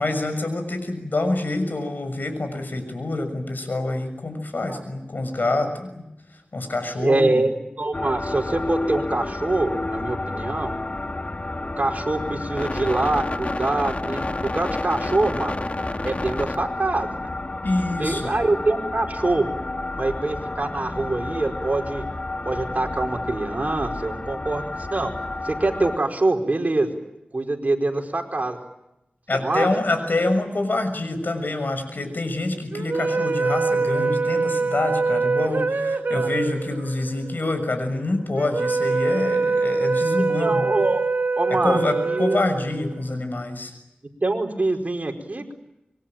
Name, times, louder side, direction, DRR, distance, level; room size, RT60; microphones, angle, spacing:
voice 1, 0.0-6.1 6.5-7.4 17.6-18.3 29.3-40.6 41.5-43.7, left 2 dB, 70° left, 8 dB, 6.6 m, -26 dB
voice 2, 7.0-10.7 11.8-15.6 16.0-17.3 18.0-19.5 19.9-22.1 22.4-25.1 25.4-27.0 27.3-28.6 29.3-29.7 36.1-36.3 40.4-41.0 41.4-42.4 44.2-45.5, right 2 dB, 50° right, 3 dB, 4.9 m, -24 dB
sound 1, 7.9-26.0, left 2 dB, 45° left, 1.8 m, -30 dB
sound 2, 32.7-43.1, right 4 dB, 80° right, 2.0 m, -24 dB
26.0 x 23.5 x 9.0 m, 0.88 s
wide cardioid pair, 50°, 3 cm